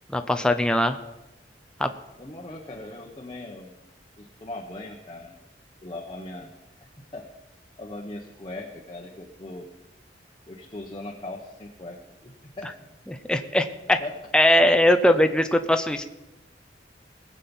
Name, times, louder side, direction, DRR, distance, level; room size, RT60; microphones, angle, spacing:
voice 1, 0.1-1.0 1.8-1.9 13.1-14.0 14.3-16.1, left 1 dB, 5° left, 7 dB, 0.6 m, -20 dB
voice 2, 2.2-3.8 4.2-5.4 5.8-6.5 6.8-7.3 7.8-9.7 10.5-12.7 14.0-14.1 14.7-14.9, left 2 dB, 25° left, -1 dB, 1.1 m, -39 dB
19.5 x 7.5 x 5.4 m, 0.98 s
head